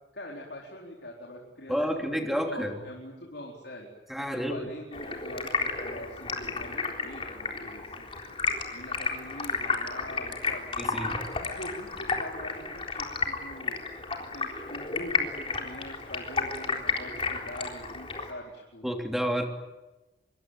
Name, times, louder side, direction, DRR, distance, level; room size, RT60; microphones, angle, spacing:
voice 1, 0.1-2.2 2.4-3.9 4.3-8.2 8.7-13.8 14.3-18.9, left 1 dB, 65° left, -1 dB, 4.4 m, -43 dB
voice 2, 1.7-2.8 4.1-4.7 10.8-11.2 18.8-19.4, equal, ahead, 3 dB, 3.2 m, -30 dB
Stream, 4.9-18.3, left 4 dB, 30° left, 3.9 m, -32 dB
25.5 x 24.0 x 9.2 m, 1.1 s
head